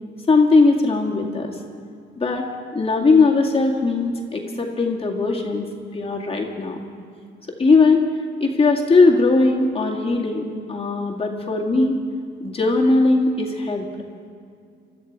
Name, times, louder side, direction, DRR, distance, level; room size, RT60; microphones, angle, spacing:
voice 1, 0.3-1.6 2.2-2.5 2.7-5.7 5.9-6.8 7.6-8.0 8.4-12.0 12.4-13.9, left 3 dB, 30° left, -1 dB, 2.1 m, -19 dB
21.5 x 13.0 x 4.9 m, 2.4 s
cardioid pair, 90°, 20 cm